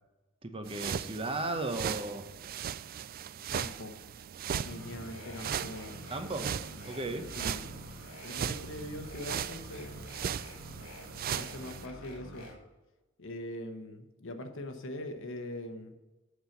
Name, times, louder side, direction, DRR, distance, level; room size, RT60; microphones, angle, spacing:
voice 1, 0.4-2.3 5.7-5.8 6.1-6.6 6.8-7.3, right 2 dB, 25° right, 7 dB, 0.9 m, -35 dB
sound 1, 0.6-11.9, right 8 dB, 45° right, 0.3 m, -38 dB
voice 2, 3.5-4.0 4.5-6.0 7.4-7.7 8.2-10.1 11.3-12.5 13.2-15.9, left 1 dB, 65° left, 6 dB, 1.2 m, -42 dB
sound 2, 4.5-12.5, equal, 90° left, 2.6 m, -47 dB
8.2 x 6.0 x 7.2 m, 1.1 s
head